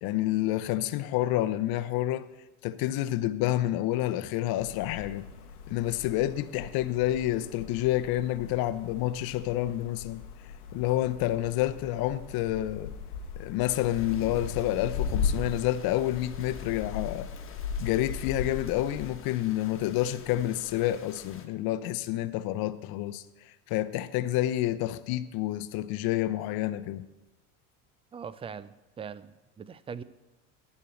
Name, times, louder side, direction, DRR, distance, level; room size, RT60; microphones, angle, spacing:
voice 1, 0.0-2.3 2.6-5.3 5.7-10.2 10.7-12.9 13.4-17.3 17.8-23.2 23.7-27.0, left 14 dB, 55° left, 0.8 m, -29 dB
sound 1, 4.6-19.1, left 6 dB, 85° left, 1.1 m, -38 dB
sound 2, 13.7-21.5, left 6 dB, 30° left, 1.3 m, -46 dB
voice 2, 28.1-30.0, right 6 dB, 15° right, 0.3 m, -41 dB
11.5 x 4.7 x 8.0 m
hypercardioid pair, 80°, 44 cm